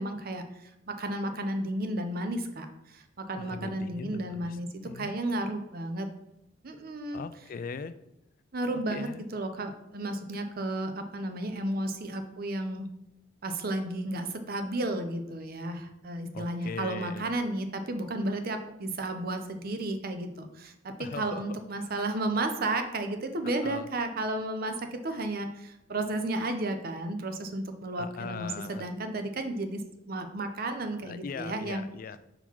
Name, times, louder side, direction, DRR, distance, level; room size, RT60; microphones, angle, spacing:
voice 1, 0.0-6.1 6.6-7.2 8.5-12.9 13.4-31.8, right 1 dB, 50° right, 7 dB, 0.7 m, -33 dB
voice 2, 3.4-4.6 4.9-5.2 7.1-7.9 8.7-9.3 16.3-17.3 21.0-21.6 23.6-23.9 27.9-28.8 31.0-32.2, left 5 dB, 45° left, 13 dB, 0.3 m, -40 dB
5.7 x 3.9 x 4.5 m, 0.88 s
head